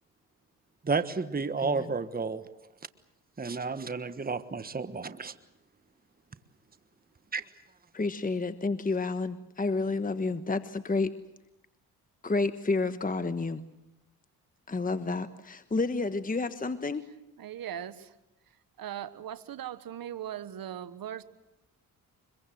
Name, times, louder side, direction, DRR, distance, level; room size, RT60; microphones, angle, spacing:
voice 1, 0.8-2.4 3.4-5.3 7.3-7.4, right 4 dB, 25° right, 12 dB, 1.4 m, -31 dB
voice 2, 1.6-1.9 7.9-11.1 12.2-13.6 14.7-17.0, left 3 dB, 20° left, 11 dB, 1.3 m, -30 dB
voice 3, 17.4-18.1 18.8-21.2, right 10 dB, 65° right, 14 dB, 1.4 m, -39 dB
25.0 x 22.5 x 7.8 m, 0.89 s
supercardioid pair, 65°, 38 cm